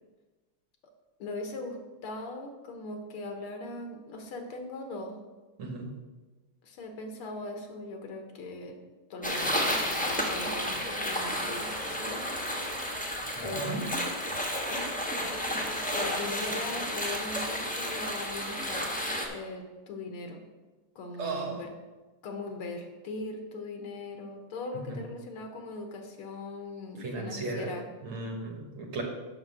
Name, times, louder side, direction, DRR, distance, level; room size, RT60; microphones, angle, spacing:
voice 1, 1.2-5.2 6.6-8.8 9.1-12.8 13.4-14.1 14.7-15.6 15.9-18.9 19.3-20.4 21.0-21.7 22.2-27.9, left 2 dB, 85° left, 3 dB, 2.0 m, -40 dB
voice 2, 5.6-5.9 13.3-13.8 21.2-21.6 24.9-25.0 27.0-27.7 28.0-29.0, right 3 dB, 75° right, 0 dB, 2.1 m, -35 dB
sound 1, 9.2-19.3, equal, 5° left, 0.6 m, -32 dB
7.2 x 5.5 x 6.2 m, 1.2 s
omnidirectional pair, 2.3 m